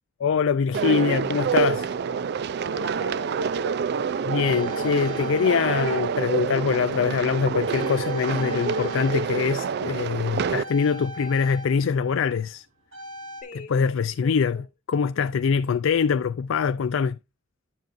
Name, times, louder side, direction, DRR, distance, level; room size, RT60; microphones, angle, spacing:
voice 1, 0.2-1.9 4.2-12.6 13.7-14.6 14.9-17.2, left 6 dB, 80° left, 0.4 m, -23 dB
sound 1, 0.7-10.6, right 6 dB, 55° right, 0.4 m, -27 dB
voice 2, 2.7-3.9 11.0-11.4 13.4-13.8 14.2-14.6, left 4 dB, 45° left, 2.0 m, -42 dB
sound 2, 4.4-7.3 7.6-13.4, left 1 dB, 85° right, 3.4 m, -40 dB
10.5 x 7.4 x 2.5 m
head